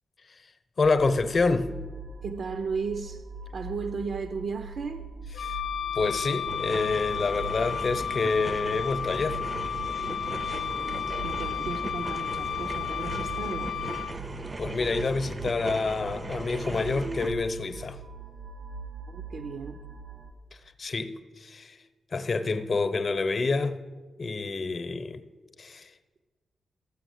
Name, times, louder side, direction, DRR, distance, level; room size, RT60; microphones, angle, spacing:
voice 1, 0.8-1.7 5.4-5.6 5.9-9.4 14.6-18.0 20.8-21.8 22.1-23.8 24.2-25.2 25.6-25.9, left 3 dB, 45° left, 0.8 m, -27 dB
sound 1, 0.8-20.3, right 3 dB, 90° right, 1.6 m, -42 dB
voice 2, 2.2-3.3 3.5-5.1 10.5-13.7 19.1-19.8, right 5 dB, 70° right, 0.6 m, -35 dB
Wind instrument woodwind instrument, 5.3-14.1, left 9 dB, 85° left, 0.4 m, -33 dB
sound 2, 6.3-17.3, right 2 dB, 25° right, 0.5 m, -38 dB
13.5 x 6.4 x 7.9 m
cardioid pair, 100°, 0 cm